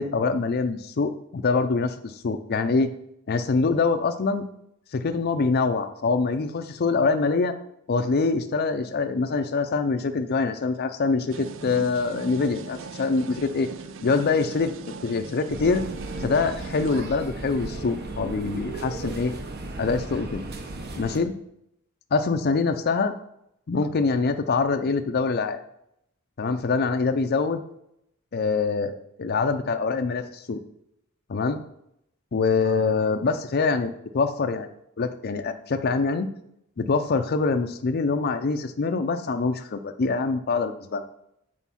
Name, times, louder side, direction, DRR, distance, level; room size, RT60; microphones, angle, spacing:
voice 1, 0.0-2.9 3.3-4.5 4.9-7.5 7.9-13.7 14.0-14.7 15.0-15.8 16.2-19.3 19.8-20.4 21.0-21.3 22.1-23.1 23.7-25.6 26.4-27.6 28.3-30.6 31.3-31.6 32.3-34.7 35.0-36.3 36.8-41.0, left 4 dB, 50° left, 7 dB, 0.5 m, -24 dB
sound 1, 11.3-17.0, right 4 dB, 65° right, 0.5 m, -39 dB
sound 2, 15.5-21.2, right 2 dB, 50° right, 1.0 m, -35 dB
8.2 x 4.6 x 5.6 m, 0.77 s
head